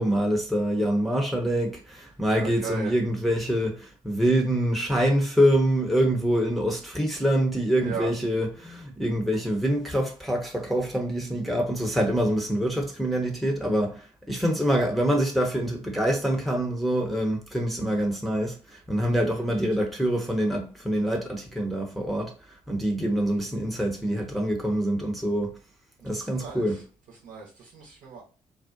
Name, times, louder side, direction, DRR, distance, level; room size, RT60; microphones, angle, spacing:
voice 1, 0.0-22.3 22.7-25.6 26.0-26.8, equal, ahead, 0.7 m, -25 dB
voice 2, 2.4-2.9 7.8-8.1 26.0-26.6 27.2-28.2, right 5 dB, 60° right, 0.9 m, -36 dB
2.5 x 2.1 x 2.5 m
hypercardioid pair, 40°, 15 cm